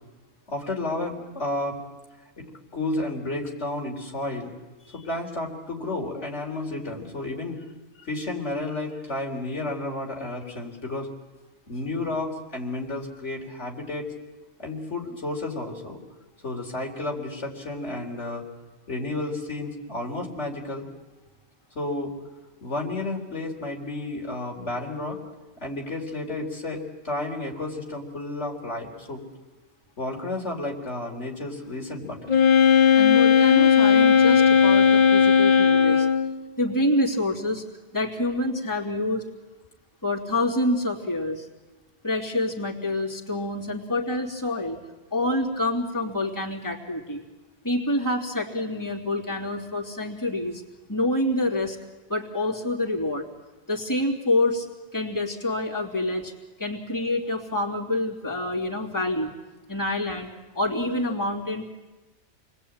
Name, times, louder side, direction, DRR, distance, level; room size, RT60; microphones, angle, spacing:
voice 1, 0.5-1.8 2.4-4.5 4.9-7.6 8.0-11.1 11.7-14.1 14.6-16.0 16.4-18.4 18.9-20.9 21.7-22.1 22.6-25.2 25.6-29.2 30.0-32.4, left 2 dB, 80° left, 0 dB, 4.2 m, -32 dB
Wind instrument woodwind instrument, 32.3-36.3, left 7 dB, 35° left, 2.2 m, -17 dB
voice 2, 32.9-36.1 36.6-37.6 37.9-39.2 40.0-41.5 42.0-44.8 45.1-47.2 47.6-50.6 50.9-51.8 52.1-53.3 53.7-54.7 54.9-56.3 56.6-59.3 59.7-60.3 60.5-61.6, left 1 dB, 15° left, -2 dB, 3.1 m, -27 dB
28.5 x 21.0 x 8.8 m, 1.2 s
omnidirectional pair, 1.2 m